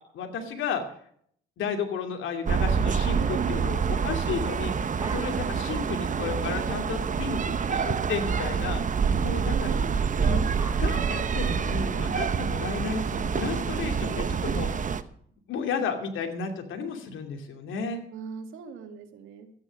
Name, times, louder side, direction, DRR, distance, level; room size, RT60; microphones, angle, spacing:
voice 1, 0.1-0.8 1.6-8.8 9.1-9.7 10.2-10.4 10.8-14.7 15.5-18.0, left 5 dB, 80° left, 5 dB, 2.6 m, -33 dB
sound 1, 2.5-15.0, right 6 dB, 40° right, 1.0 m, -27 dB
voice 2, 3.1-3.8 4.5-4.8 9.3-9.9 18.1-19.5, right 7 dB, 90° right, 7 dB, 2.0 m, -40 dB
sound 2, 4.7-5.7 6.0-6.1 6.4-6.7 7.1-7.3 7.6-7.7 8.2-8.9 9.8-11.8, right 3 dB, 20° right, 2.7 m, -43 dB
13.5 x 9.7 x 6.3 m, 0.63 s
cardioid pair, 90°, 20 cm